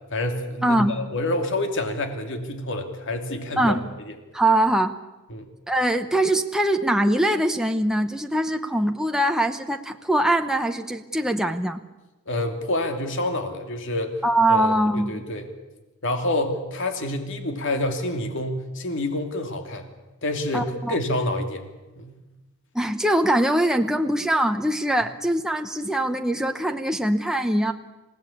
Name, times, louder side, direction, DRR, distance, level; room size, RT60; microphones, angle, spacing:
voice 1, 0.1-3.8 4.1-4.2 5.3-5.5 12.3-14.2 14.5-15.5 16.0-19.9 20.2-21.6 22.0-22.2, left 1 dB, 55° left, 6 dB, 2.8 m, -27 dB
voice 2, 0.6-0.9 3.6-3.8 4.3-4.9 5.7-11.8 14.2-15.2 20.5-21.0 22.7-27.7, right 1 dB, 5° right, 5 dB, 0.8 m, -22 dB
27.0 x 17.5 x 8.6 m, 1.1 s
head